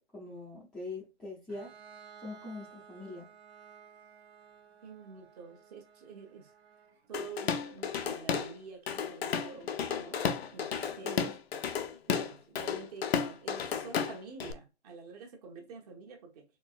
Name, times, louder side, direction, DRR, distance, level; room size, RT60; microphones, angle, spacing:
voice 1, 0.1-1.7 2.2-3.3 11.0-11.3, left 3 dB, ahead, 0.5 m, -43 dB
Bowed string instrument, 1.5-7.1, right 7 dB, 65° right, 1.3 m, -55 dB
voice 2, 4.8-6.5 7.1-10.3 10.5-11.3 12.1-16.4, right 5 dB, 35° right, 1.2 m, -47 dB
Drum kit / Drum, 7.1-8.5 8.9-14.5, left 7 dB, 60° left, 0.6 m, -33 dB
4.5 x 3.0 x 2.4 m
hypercardioid pair, 145°, 35 cm